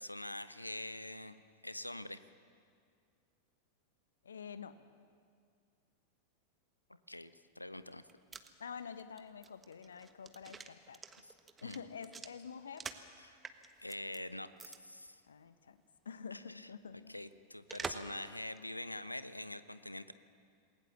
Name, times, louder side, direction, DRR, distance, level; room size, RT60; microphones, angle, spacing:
voice 1, 0.0-2.2 6.9-8.0 11.2-11.3 11.6-11.8 13.2-13.4 13.8-15.2 16.3-16.7 17.1-20.1, left 1 dB, 85° left, 13 dB, 1.0 m, -45 dB
voice 2, 4.2-4.7 8.6-11.0 11.6-12.8 15.3-17.1, left 6 dB, 70° left, 12 dB, 1.2 m, -48 dB
sound 1, 7.9-13.1 13.4-14.2 14.6-14.8 15.1-15.2 17.7-18.2 18.6-18.7, right 5 dB, 15° right, 1.4 m, -47 dB
28.0 x 20.0 x 7.3 m, 2.2 s
figure-of-eight pair, 90°, 0 cm